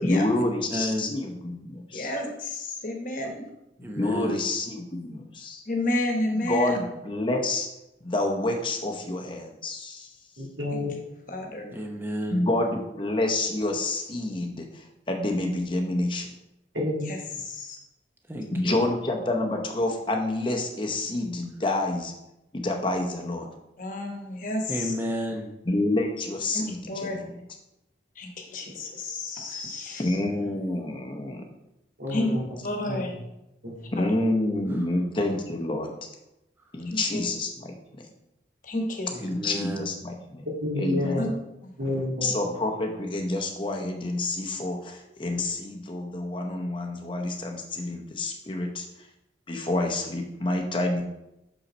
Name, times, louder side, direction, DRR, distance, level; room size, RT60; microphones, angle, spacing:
voice 1, 0.0-2.1 3.8-5.6 6.4-7.7 8.0-10.1 12.3-16.3 18.5-22.1 22.6-23.5 25.7-27.2 30.0-31.4 33.9-35.9 36.7-37.7 39.2-40.4 40.8-41.2 42.2-48.9 49.5-51.0, left 2 dB, 25° left, 2 dB, 0.8 m, -28 dB
voice 2, 0.7-1.1 3.8-4.4 11.7-12.5 18.3-18.8 24.7-25.5 30.1-30.5 34.7-34.9 39.1-39.9, equal, 10° right, 1 dB, 0.8 m, -32 dB
voice 3, 1.9-3.4 5.7-6.8 10.7-10.8 11.3-11.6 17.1-17.8 23.8-24.9 26.5-27.2 28.2-30.2 32.1-32.3 32.6-33.1 34.0-34.2 36.8-37.2 38.6-39.1 41.2-41.3 41.6-41.7, left 2 dB, 45° left, 2 dB, 1.2 m, -31 dB
voice 4, 10.4-10.9 16.7-17.1 32.0-32.4 32.9-33.1 33.6-33.7 40.6-41.2 41.8-42.4, left 1 dB, 85° right, -2 dB, 2.0 m, -29 dB
6.4 x 5.4 x 4.2 m, 0.89 s
head